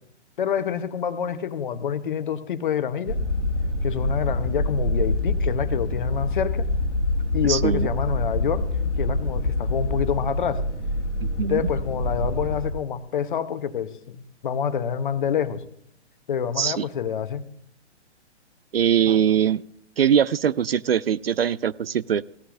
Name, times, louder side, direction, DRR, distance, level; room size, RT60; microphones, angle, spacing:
voice 1, 0.4-3.2 3.8-6.7 7.3-8.7 9.0-10.7 11.5-15.6 16.3-17.4, left 8 dB, 45° left, 11 dB, 1.1 m, -27 dB
sound 1, 3.1-12.7, left 2 dB, 85° left, 1.5 m, -26 dB
voice 2, 7.5-7.9 11.2-11.6 16.6-16.8 18.7-19.6 20.0-22.2, right 8 dB, 55° right, 19 dB, 0.5 m, -22 dB
17.0 x 14.0 x 2.6 m, 0.71 s
figure-of-eight pair, 125°, 35 cm